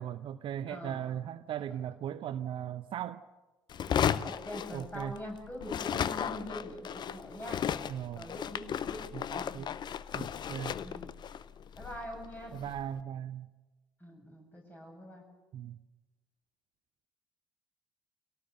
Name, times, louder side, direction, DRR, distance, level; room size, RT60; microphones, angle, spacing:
voice 1, 0.0-3.2 4.7-5.2 7.9-8.3 9.1-9.8 10.1-10.8 12.5-13.5 15.5-15.8, right 10 dB, 50° right, 13 dB, 0.8 m, -38 dB
voice 2, 0.7-1.0 4.2-7.7 8.1-9.1 9.3-9.8 10.8-11.1 11.8-12.6 14.0-15.2, equal, 15° left, 2 dB, 7.7 m, -44 dB
sound 1, 3.7-5.3 5.6-12.8, left 8 dB, 45° left, 0.8 m, -35 dB
24.5 x 18.0 x 6.8 m, 1.1 s
hypercardioid pair, 55°, 11 cm